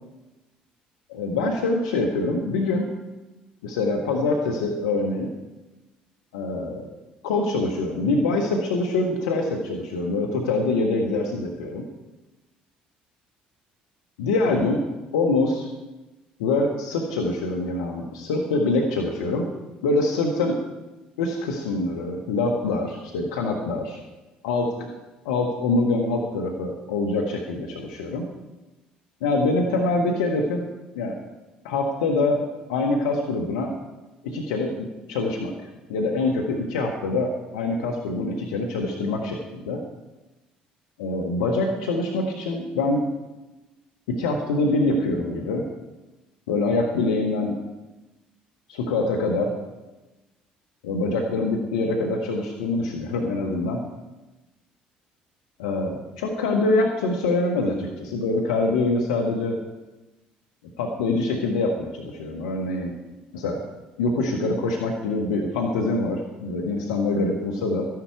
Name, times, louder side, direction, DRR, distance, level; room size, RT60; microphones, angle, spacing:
voice 1, 1.1-2.9 3.6-5.3 6.3-6.9 7.2-11.8 14.2-14.8 15.1-15.7 16.4-19.5 19.8-20.6 21.2-24.0 24.4-24.8 25.2-28.2 29.2-30.6 30.9-31.2 31.6-32.4 32.7-33.7 34.2-35.5 35.9-39.8 41.0-43.1 44.1-45.6 46.5-47.6 48.7-49.5 50.8-53.8 55.6-59.6 60.8-62.9 63.3-63.6 64.0-67.9, left 2 dB, 85° left, 0 dB, 1.4 m, -24 dB
13.0 x 11.0 x 4.7 m, 1.1 s
hypercardioid pair, 60°, 4 cm